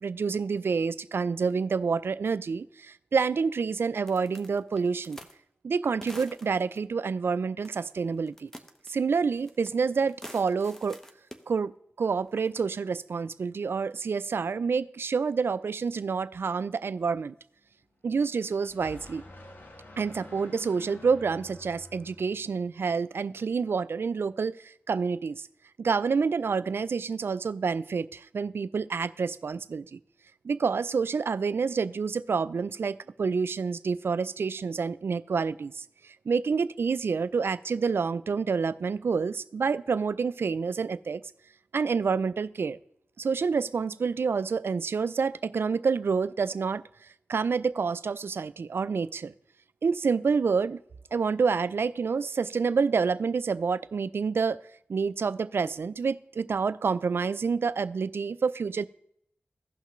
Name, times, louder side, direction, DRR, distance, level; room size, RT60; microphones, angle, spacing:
voice 1, 0.0-5.2 5.6-8.5 8.9-11.0 11.5-11.7 12.0-17.3 18.0-19.2 20.0-25.5 25.8-30.0 30.4-35.8 36.3-41.2 41.7-42.8 43.2-46.8 47.3-49.3 49.8-50.8 51.1-54.6 54.9-58.9, right 5 dB, 70° right, 15 dB, 0.4 m, -28 dB
sound 1, 4.1-5.4 6.0-6.8 7.6-8.0 8.3-9.8 10.0-11.4 12.3-12.6, equal, 10° left, 1.0 m, -46 dB
sound 2, 18.1-22.7, left 2 dB, 55° left, 1.3 m, -49 dB
16.0 x 5.7 x 3.1 m, 0.70 s
cardioid pair, 50°, 4 cm